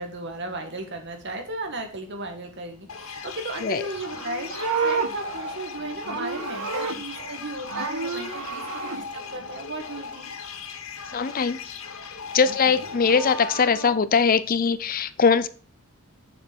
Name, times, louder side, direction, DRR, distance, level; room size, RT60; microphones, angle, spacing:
voice 1, 0.0-10.3 12.4-12.9, right 2 dB, 55° right, 5 dB, 1.9 m, -35 dB
sound 1, 2.9-13.6, left 5 dB, 65° left, 1.1 m, -38 dB
Livestock farm animals working animals, 4.0-7.4 7.7-9.0 12.8-13.9, right 4 dB, 80° right, 1.4 m, -31 dB
voice 2, 11.1-11.6 12.3-15.5, left 5 dB, 40° left, 14 dB, 0.5 m, -21 dB
6.9 x 6.4 x 6.2 m, 0.39 s
head